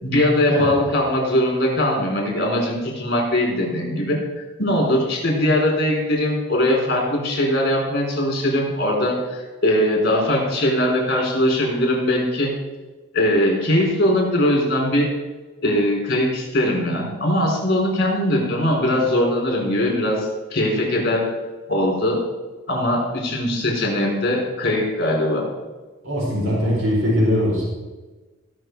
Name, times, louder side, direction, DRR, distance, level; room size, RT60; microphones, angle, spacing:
voice 1, 0.0-12.5 13.1-15.1 15.6-21.2 21.7-22.2 22.7-25.5, left 1 dB, 50° left, -1 dB, 4.2 m, -21 dB
voice 2, 26.0-27.6, equal, 70° right, -5 dB, 4.2 m, -20 dB
17.0 x 6.2 x 4.7 m, 1.2 s
head